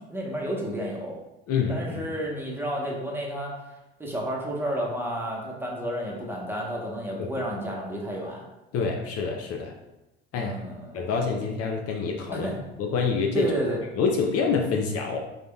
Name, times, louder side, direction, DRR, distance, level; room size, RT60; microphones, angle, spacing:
voice 1, 0.1-1.2 1.7-3.5 4.0-8.4 10.3-11.0 12.3-12.6 13.3-13.8, right 1 dB, 5° right, -3 dB, 0.9 m, -31 dB
voice 2, 1.5-2.0 7.2-7.3 8.7-9.7 10.3-10.6 10.9-12.5 12.8-13.5 14.0-15.2, left 5 dB, 50° left, 2 dB, 0.5 m, -26 dB
4.0 x 3.4 x 2.2 m, 0.96 s
hypercardioid pair, 80°, 32 cm